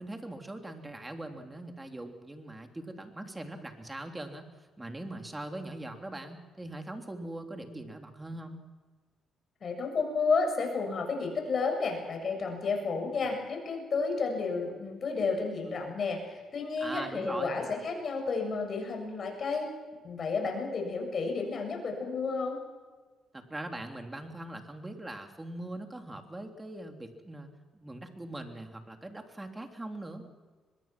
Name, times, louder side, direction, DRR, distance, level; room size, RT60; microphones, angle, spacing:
voice 1, 0.0-4.4 4.8-8.6 16.8-17.6 23.3-30.3, right 1 dB, 15° right, 4 dB, 3.2 m, -41 dB
voice 2, 9.6-19.7 20.0-22.6, left 4 dB, 50° left, 2 dB, 7.4 m, -31 dB
24.0 x 21.5 x 6.1 m, 1.4 s
cardioid pair, 90°, 0 cm